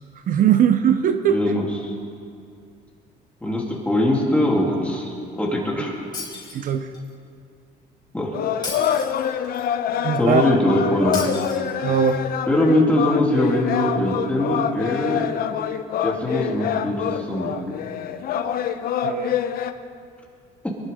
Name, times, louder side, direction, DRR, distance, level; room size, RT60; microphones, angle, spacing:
voice 1, 0.3-1.4 3.5-3.6 6.5-6.9 10.0-10.6 11.8-12.2 19.0-19.3, right 8 dB, 55° right, 9 dB, 0.7 m, -20 dB
voice 2, 1.3-1.9 3.4-5.9 8.1-8.3 10.2-11.2 12.5-15.3 16.0-17.6, left 1 dB, 10° left, -3 dB, 3.1 m, -22 dB
Shatter, 6.1-7.1 8.6-9.6 11.1-12.1, left 3 dB, 25° left, 4.2 m, -35 dB
sound 1, 8.3-19.7, left 9 dB, 60° left, 0.8 m, -26 dB
23.0 x 12.0 x 3.7 m, 2.4 s
cardioid pair, 110°, 17 cm